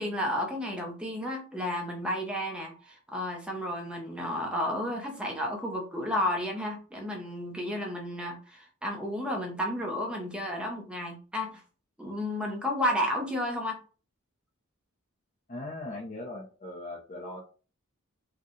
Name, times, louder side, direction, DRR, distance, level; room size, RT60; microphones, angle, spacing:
voice 1, 0.0-11.6 12.0-13.8, left 1 dB, 5° right, 0 dB, 0.7 m, -32 dB
voice 2, 15.5-17.4, left 2 dB, 35° left, -3 dB, 0.7 m, -39 dB
4.5 x 2.2 x 3.1 m, 0.37 s
head